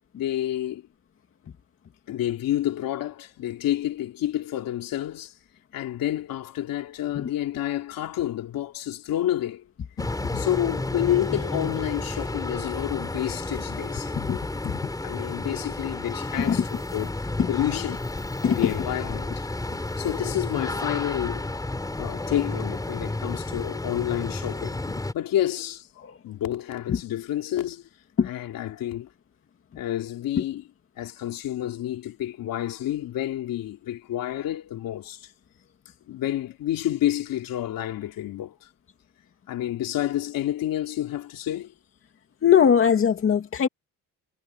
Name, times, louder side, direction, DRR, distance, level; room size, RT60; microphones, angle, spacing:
voice 1, 0.1-0.8 2.1-5.3 5.7-9.6 10.3-14.2 15.0-18.0 18.4-19.4 20.0-21.5 22.0-24.8 25.1-25.9 26.2-27.8 28.2-29.1 29.7-30.7 31.0-35.3 36.1-38.5 39.5-41.7, left 12 dB, 75° left, 3.4 m, -29 dB
sound 1, 10.0-25.1, left 2 dB, 10° left, 5.6 m, -31 dB
voice 2, 14.2-14.8 16.5-16.6 17.4-17.5 18.4-18.7 26.0-26.1 26.9-27.0 28.2-28.3 42.4-43.7, left 8 dB, 40° left, 2.5 m, -21 dB
cardioid pair, 165°, 34 cm